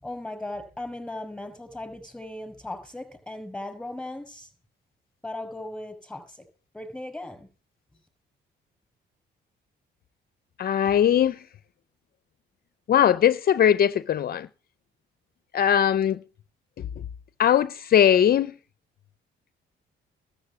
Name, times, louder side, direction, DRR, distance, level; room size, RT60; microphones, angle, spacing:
voice 1, 0.0-4.5 5.2-6.4 6.7-7.5, left 1 dB, 5° left, 5.8 m, -37 dB
voice 2, 10.6-11.4 12.9-14.5 15.5-16.2 17.4-18.5, left 9 dB, 50° left, 0.5 m, -20 dB
13.0 x 7.6 x 8.4 m
cardioid pair, 90°, 20 cm